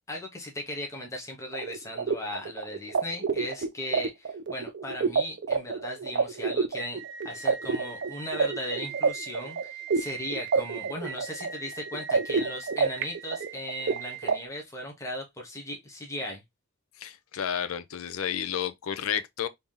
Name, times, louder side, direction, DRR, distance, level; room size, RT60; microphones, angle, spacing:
voice 1, 0.1-16.4, left 1 dB, 15° left, 0.8 m, -37 dB
sound 1, 1.5-14.3, right 5 dB, 55° right, 0.5 m, -29 dB
voice 2, 17.0-19.5, left 8 dB, 75° left, 0.5 m, -31 dB
3.3 x 2.8 x 3.5 m
head